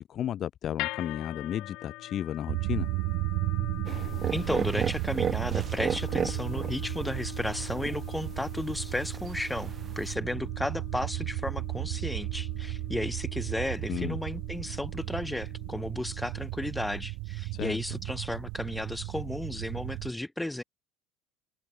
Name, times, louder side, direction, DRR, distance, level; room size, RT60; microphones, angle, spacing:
voice 1, 0.0-2.9 13.9-14.2 17.5-17.8, left 10 dB, 45° left, 0.7 m, -33 dB
sound 1, 0.8-17.0, left 20 dB, 65° left, 2.5 m, -44 dB
sound 2, 2.5-20.1, right 26 dB, 70° right, 1.7 m, -34 dB
sound 3, 3.8-10.1, right 7 dB, 30° right, 0.3 m, -35 dB
voice 2, 4.3-20.6, left 1 dB, 5° left, 2.5 m, -34 dB
supercardioid pair, 100°, 0 cm